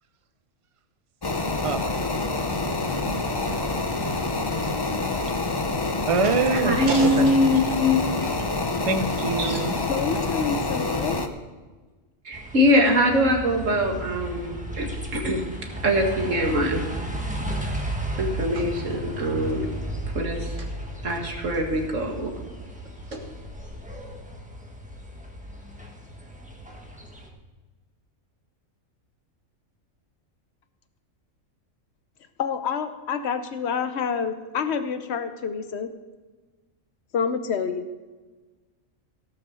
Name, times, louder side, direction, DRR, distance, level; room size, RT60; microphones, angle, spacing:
sound 1, 1.2-11.3, left 3 dB, 25° left, 0.6 m, -27 dB
voice 1, 1.6-3.2 4.6-4.7 6.1-7.3 8.8-9.8, right 4 dB, 30° right, 10 dB, 0.7 m, -27 dB
voice 2, 6.2-8.3 9.4-9.6 12.3-15.5 15.8-16.8 18.2-19.7 20.1-20.5 21.0-22.3 23.1-23.2, left 1 dB, 70° right, 2 dB, 2.2 m, -23 dB
voice 3, 9.9-11.2 32.4-35.9 37.1-37.9, left 6 dB, 55° left, 9 dB, 1.1 m, -28 dB
sound 2, 12.3-27.3, right 1 dB, 5° right, 1.3 m, -34 dB
16.5 x 6.6 x 6.5 m, 1.3 s
omnidirectional pair, 1.4 m